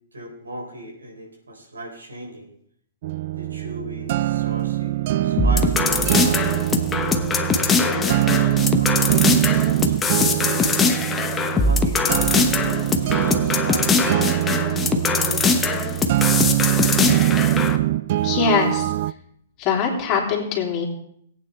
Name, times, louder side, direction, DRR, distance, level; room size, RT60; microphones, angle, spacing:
voice 1, 0.1-2.5 3.3-6.8 7.7-10.9 11.6-15.9, right 1 dB, 90° right, -1 dB, 4.1 m, -37 dB
sound 1, 3.0-19.1, right 15 dB, 50° right, 0.3 m, -23 dB
sound 2, 5.4-17.8, left 4 dB, 15° left, 1.1 m, -22 dB
voice 2, 18.2-18.9 19.6-20.8, left 6 dB, 35° left, -1 dB, 3.2 m, -22 dB
18.0 x 9.1 x 3.4 m, 0.68 s
hypercardioid pair, 120°, 0 cm